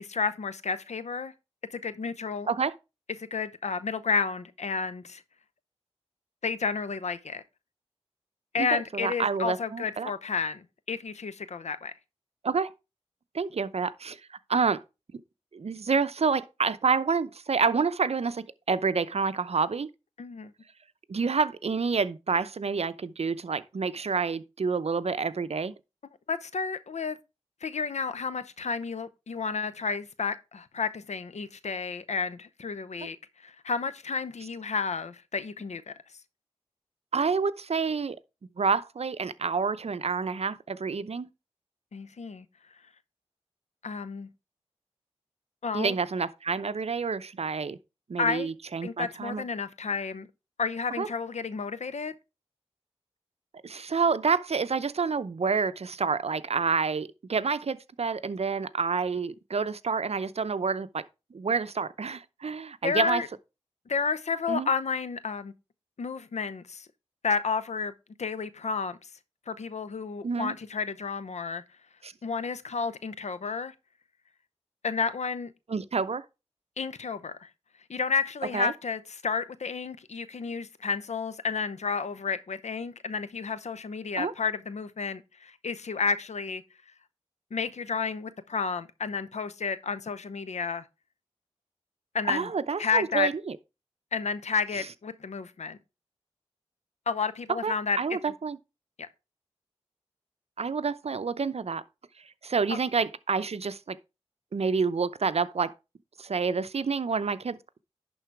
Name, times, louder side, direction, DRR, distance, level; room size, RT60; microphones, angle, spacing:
voice 1, 0.0-1.3 1.7-2.5 3.2-5.2 6.4-7.4 8.5-11.9 20.2-20.5 26.3-27.2 27.6-35.9 41.9-42.5 43.8-44.3 45.6-45.9 48.2-48.5 48.8-50.3 50.6-52.1 62.8-63.3 63.9-65.5 66.0-66.9 67.2-67.9 68.2-69.1 69.5-71.6 72.2-73.7 74.8-75.5 76.8-77.5 77.9-86.6 87.5-90.8 92.1-92.5 92.8-93.3 94.1-95.8 97.1-98.0 98.3-98.4 99.0-99.1 102.7-102.8, left 5 dB, 75° left, 0.7 m, -31 dB
voice 2, 8.6-10.1 12.4-12.7 13.3-14.2 14.5-14.8 15.5-19.9 21.1-25.7 37.1-38.2 38.6-41.3 45.7-47.8 48.1-49.4 51.0-51.1 53.6-61.0 61.3-63.2 64.5-64.7 70.2-70.5 72.0-72.1 75.7-76.2 78.5-78.7 84.2-84.3 92.3-93.6 97.6-98.6 100.6-101.8 102.4-104.0 104.5-105.7 106.2-107.6, right 5 dB, 60° right, 0.6 m, -28 dB
11.0 x 3.9 x 4.6 m
cardioid pair, 40°, 12 cm